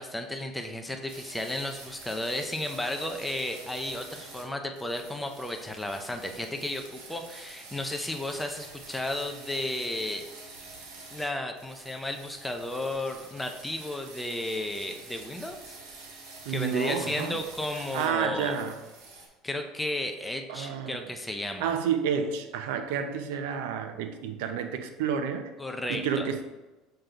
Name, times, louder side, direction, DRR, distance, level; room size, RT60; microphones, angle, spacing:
voice 1, 0.0-10.5 11.1-15.7 16.5-18.6 19.4-21.7 25.6-26.3, left 1 dB, 5° left, 5 dB, 0.4 m, -33 dB
sound 1, 1.1-4.4 4.7-11.3 11.5-18.1 18.4-19.3, right 3 dB, 60° right, 1.7 m, -47 dB
voice 2, 16.5-17.4 17.9-18.8 20.5-21.1 21.6-25.5 25.9-26.4, right 7 dB, 80° right, 8 dB, 0.6 m, -30 dB
6.6 x 3.9 x 4.5 m, 1.1 s
cardioid pair, 175°, 0 cm